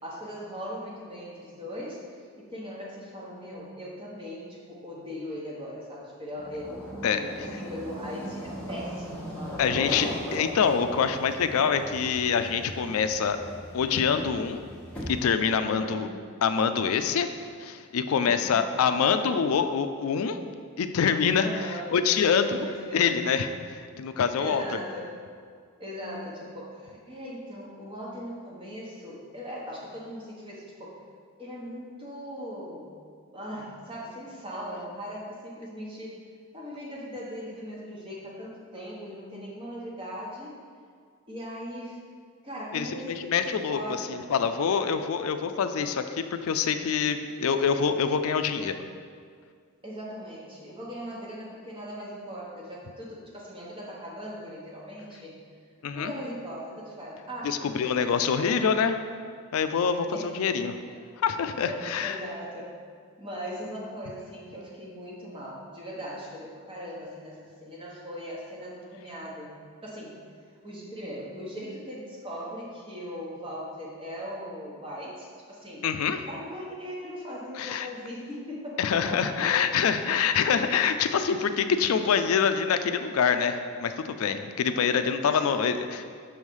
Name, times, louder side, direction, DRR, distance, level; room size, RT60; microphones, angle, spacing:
voice 1, 0.0-9.6 15.6-16.1 18.2-18.8 21.4-21.9 22.6-23.2 24.4-25.1 25.8-31.0 31.4-32.9 33.3-36.2 36.5-40.5 41.3-42.0 42.4-43.2 43.5-44.3 49.8-55.4 55.9-58.6 60.1-60.4 60.9-61.0 61.6-62.7 63.2-69.5 69.8-70.2 70.6-75.9 76.3-79.5 84.7-84.9 85.2-85.7, equal, 25° right, -5 dB, 1.1 m, -39 dB
sound 1, 6.3-15.5, equal, 5° left, 0.9 m, -38 dB
voice 2, 9.6-13.4 13.7-14.6 15.1-16.1 16.4-17.3 17.6-20.4 20.8-22.6 22.9-23.5 24.0-24.6 42.7-48.8 55.8-56.2 57.4-58.9 59.5-60.7 61.2-62.2 75.8-76.2 77.6-77.9 78.8-86.0, left 6 dB, 75° left, 9 dB, 0.4 m, -25 dB
6.3 x 3.2 x 5.3 m, 2.1 s
head